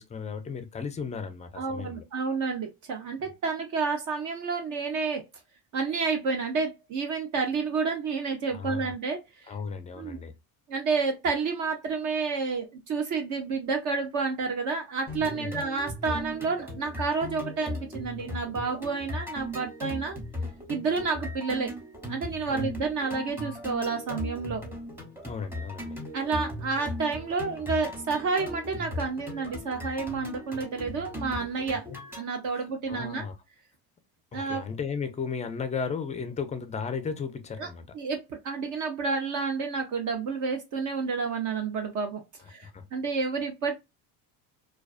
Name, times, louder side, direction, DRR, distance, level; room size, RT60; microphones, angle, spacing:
voice 1, 0.0-2.0 8.5-8.9 9.5-10.3 15.2-15.7 22.5-22.7 25.2-26.0 31.9-32.0 32.5-33.4 34.3-37.8 42.6-42.8, left 5 dB, 20° left, 0.4 m, -35 dB
voice 2, 1.5-5.2 5.7-9.5 10.0-10.2 10.7-20.2 20.7-21.7 22.1-24.6 26.1-31.8 32.2-33.3 34.3-34.6 37.6-37.7 37.9-42.2 42.5-43.7, right 4 dB, 45° right, 0.6 m, -30 dB
sound 1, 15.1-32.2, left 2 dB, 5° right, 0.9 m, -38 dB
2.4 x 2.3 x 2.4 m
cardioid pair, 110°, 41 cm